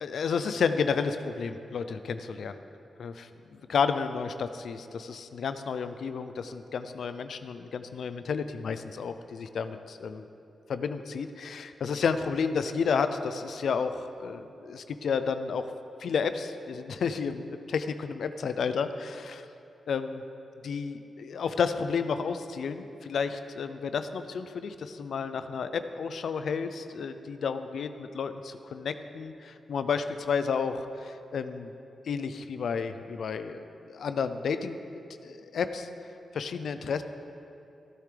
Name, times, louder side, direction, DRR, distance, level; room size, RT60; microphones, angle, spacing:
voice 1, 0.0-2.6 3.0-10.2 10.7-15.6 16.0-19.5 19.9-20.2 20.6-31.7 32.1-34.8 35.2-35.9 36.3-37.0, left 5 dB, 75° left, 10 dB, 0.5 m, -31 dB
15.0 x 9.3 x 3.4 m, 2.7 s
cardioid pair, 75°, 0 cm